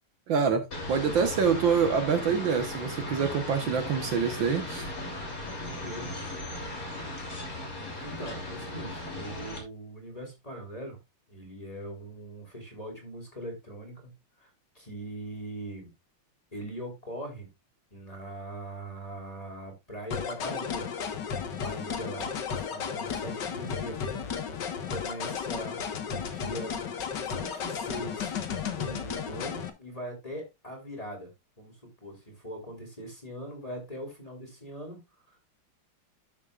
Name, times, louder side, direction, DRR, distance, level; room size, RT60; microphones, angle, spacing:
voice 1, 0.3-4.9, right 6 dB, 65° right, 1.8 m, -26 dB
sound 1, 0.7-9.6, left 1 dB, 40° left, 3.5 m, -37 dB
voice 2, 5.5-6.1 8.0-11.0 11.3-14.1 14.4-14.5 14.8-15.9 16.5-17.5 17.9-20.9 21.4-24.3 24.9-25.8 26.1-26.7 27.2-28.3 28.7-31.3 31.6-35.0, right 1 dB, 15° left, 3.5 m, -41 dB
sound 2, 20.1-29.7, left 7 dB, 55° left, 1.8 m, -34 dB
12.5 x 7.4 x 2.4 m
omnidirectional pair, 2.4 m